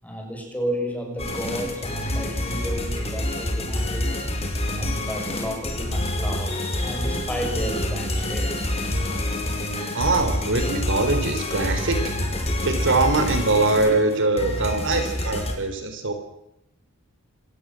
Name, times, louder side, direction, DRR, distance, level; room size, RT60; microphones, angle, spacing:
voice 1, 0.0-4.2 4.7-8.9, equal, 5° left, 3 dB, 6.3 m, -32 dB
sound 1, 1.2-15.5, left 1 dB, 30° left, 4.9 m, -27 dB
voice 2, 9.9-12.1 12.6-16.1, right 2 dB, 60° right, 7 dB, 3.9 m, -22 dB
26.0 x 18.5 x 7.7 m, 0.82 s
head